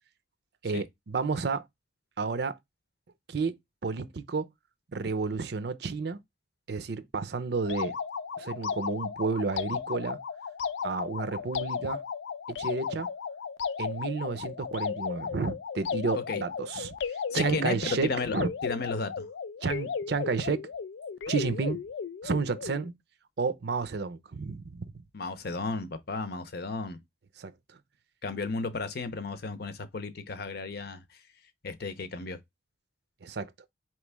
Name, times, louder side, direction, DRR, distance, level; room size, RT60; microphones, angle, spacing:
voice 1, 0.6-1.6 2.2-2.6 3.3-3.5 3.8-4.5 4.9-6.2 6.7-7.9 8.4-10.2 10.8-12.0 12.5-13.1 13.8-16.9 17.3-18.5 19.6-20.6 21.3-21.8 22.2-22.9 23.4-24.9 27.4-27.5 33.2-33.5, right 4 dB, 65° right, 0.6 m, -31 dB
sound 1, 7.7-22.9, left 6 dB, 90° left, 0.4 m, -35 dB
voice 2, 17.3-18.3 18.6-19.3 25.1-27.0 28.2-31.0 31.6-32.4, left 3 dB, 60° left, 0.7 m, -33 dB
4.4 x 3.1 x 3.4 m
head